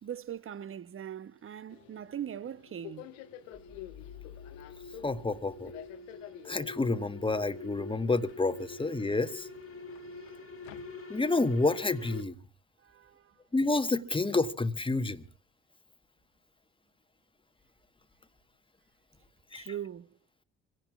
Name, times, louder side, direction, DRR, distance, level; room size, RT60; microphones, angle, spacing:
voice 1, 0.0-3.1 12.8-13.3 19.5-20.2, right 9 dB, 30° right, 0.8 m, -41 dB
Subway metro underground, 1.7-11.4, left 12 dB, 75° left, 1.2 m, -51 dB
sound 1, 1.8-12.2, left 3 dB, 30° left, 1.9 m, -46 dB
voice 2, 5.0-5.7 6.4-9.5 11.1-12.3 13.5-15.2 19.5-19.6, left 3 dB, 15° left, 1.2 m, -29 dB
26.5 x 17.0 x 2.4 m
figure-of-eight pair, 45°, 40 cm